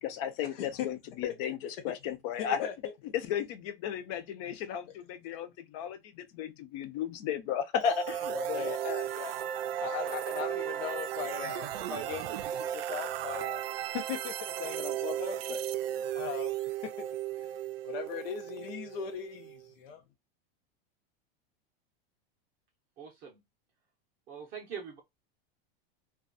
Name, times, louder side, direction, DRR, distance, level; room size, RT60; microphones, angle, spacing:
voice 1, 0.0-1.6 1.8-2.7 3.1-9.4 10.0-10.2, left 8 dB, 35° left, 0.4 m, -35 dB
voice 2, 0.5-0.9 1.2-1.6 2.4-2.7 5.3-5.4 8.3-8.7 9.8-13.6 13.9-15.6 16.1-17.0 17.4-17.5 17.8-20.0, left 8 dB, 70° left, 0.7 m, -39 dB
sound 1, 7.8-19.6, right 11 dB, 75° right, 0.5 m, -35 dB
voice 3, 23.0-23.4 24.3-25.0, right 7 dB, 25° right, 0.6 m, -43 dB
2.4 x 2.3 x 2.4 m
supercardioid pair, 165°, 30 cm